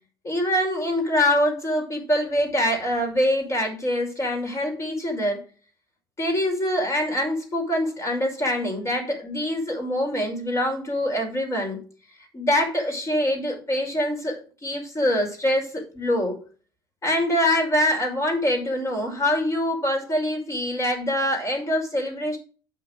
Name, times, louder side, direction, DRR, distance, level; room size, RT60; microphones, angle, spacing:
voice 1, 0.2-5.4 6.2-11.8 12.3-16.4 17.0-22.4, left 1 dB, 25° left, 2 dB, 5.5 m, -24 dB
8.4 x 6.8 x 4.9 m, 0.37 s
figure-of-eight pair, 60°, 12 cm